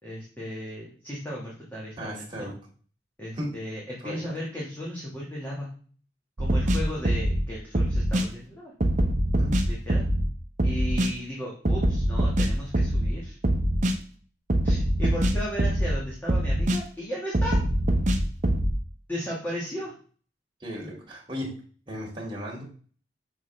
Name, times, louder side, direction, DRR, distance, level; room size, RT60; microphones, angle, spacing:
voice 1, 0.0-2.5 3.2-5.7 6.4-8.7 9.7-10.1 10.6-13.4 14.6-17.6 19.1-19.9, equal, 10° left, -5 dB, 1.5 m, -35 dB
voice 2, 2.0-2.5 3.4-3.5 4.0-4.3 9.4-9.5 20.6-21.5 21.9-22.6, equal, 25° right, -3 dB, 2.2 m, -35 dB
sound 1, 6.4-7.4 7.7-8.3 8.8-10.3 10.6-11.1 11.7-13.1 13.4-14.0 14.5-16.0 16.3-16.8 17.3-18.7, right 1 dB, 45° right, 0.8 m, -23 dB
6.4 x 5.8 x 3.3 m, 0.43 s
head